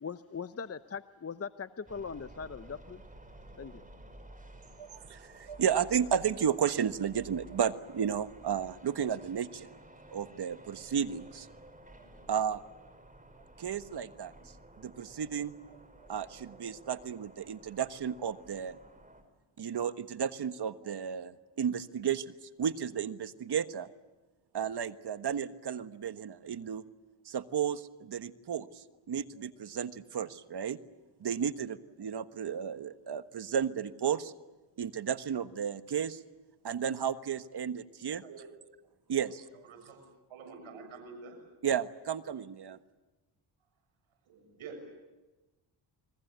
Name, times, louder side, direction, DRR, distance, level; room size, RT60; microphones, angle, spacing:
voice 1, 0.0-3.0 3.6-3.8, left 6 dB, 30° left, 11 dB, 0.9 m, -40 dB
sound 1, 1.9-19.2, right 1 dB, 15° right, 5.6 m, -54 dB
voice 2, 4.8-9.7 10.1-11.5 12.3-12.6 13.6-14.3 14.8-15.8 16.1-18.8 19.6-22.3 22.6-23.9 24.5-26.8 27.2-30.8 31.2-34.3 34.8-36.2 36.6-38.2 39.1-39.7 41.6-42.8, right 8 dB, 55° right, 11 dB, 1.4 m, -33 dB
voice 3, 38.2-38.6 39.7-40.0 40.3-41.4 44.3-44.8, right 4 dB, 80° right, 4 dB, 7.1 m, -47 dB
29.5 x 21.5 x 8.2 m, 1.1 s
cardioid pair, 70°, 48 cm